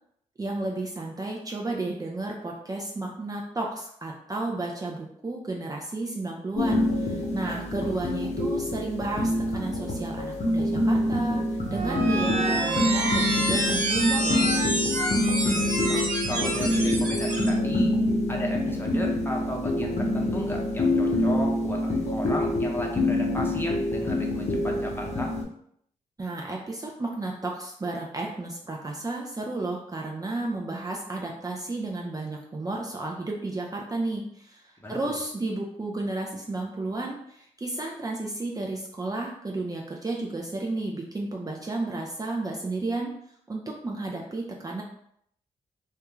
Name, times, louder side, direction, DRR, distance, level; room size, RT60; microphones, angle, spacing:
voice 1, 0.4-11.4 11.7-14.5 26.2-43.1 43.5-44.8, right 2 dB, 25° right, -1 dB, 0.5 m, -32 dB
sound 1, 6.6-25.4, left 1 dB, 50° left, 0.8 m, -26 dB
sound 2, 11.6-17.5, right 1 dB, 60° right, 0.8 m, -28 dB
voice 2, 15.4-17.9 18.3-25.3 34.8-35.1, equal, 15° left, -1 dB, 0.8 m, -35 dB
2.3 x 2.2 x 3.0 m, 0.70 s
supercardioid pair, 40°, 15 cm